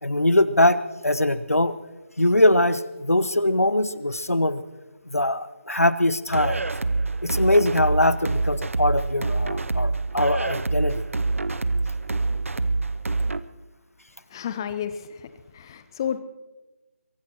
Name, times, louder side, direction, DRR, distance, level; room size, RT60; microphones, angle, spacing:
voice 1, 0.0-1.7 2.2-4.6 5.1-6.6 7.2-11.0, left 1 dB, 90° left, 15 dB, 0.9 m, -22 dB
sound 1, 6.3-13.4, right 3 dB, 65° right, 0.7 m, -26 dB
voice 2, 14.3-16.2, left 8 dB, 15° left, 12 dB, 0.6 m, -31 dB
23.5 x 17.5 x 3.0 m, 1.1 s
figure-of-eight pair, 160°, 8 cm